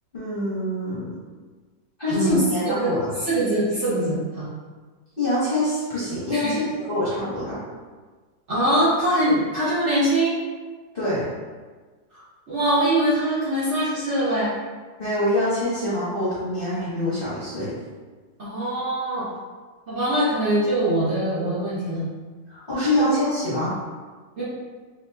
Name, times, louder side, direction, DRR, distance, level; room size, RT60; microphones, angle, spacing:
voice 1, 0.1-1.1 2.0-3.1 5.2-7.6 10.9-11.3 15.0-17.7 22.5-23.7, left 1 dB, 40° left, -11 dB, 0.8 m, -25 dB
voice 2, 2.1-2.9 3.2-4.5 6.3-6.6 8.5-10.3 12.1-12.2 12.5-14.5 18.4-19.3 19.9-22.0 22.9-23.1 24.4-24.5, right 1 dB, 45° right, -11 dB, 1.1 m, -23 dB
2.9 x 2.8 x 3.3 m, 1.4 s
omnidirectional pair, 1.9 m